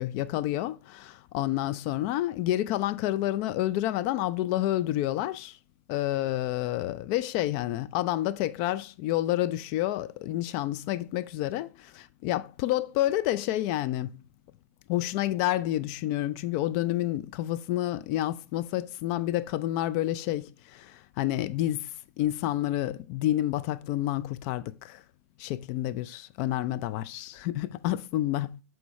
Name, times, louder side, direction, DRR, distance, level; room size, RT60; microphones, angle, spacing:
voice 1, 0.0-5.6 5.9-14.1 14.9-21.9 22.2-25.0 25.4-28.6, left 14 dB, 40° left, 0.4 m, -29 dB
8.3 x 4.4 x 3.1 m
hypercardioid pair, 115°, 9 cm